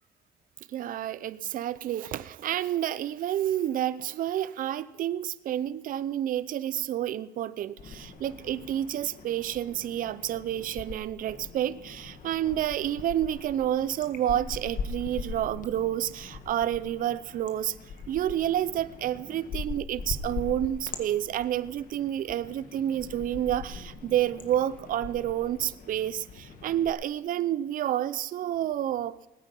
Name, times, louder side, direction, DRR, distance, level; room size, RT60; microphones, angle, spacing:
voice 1, 0.7-17.7 18.1-29.2, right 11 dB, 55° right, 16 dB, 0.6 m, -29 dB
sound 1, 7.8-10.9 11.2-26.9, left 5 dB, 55° left, 1.5 m, -41 dB
19.5 x 8.9 x 5.4 m, 0.98 s
cardioid pair, 110°, 17 cm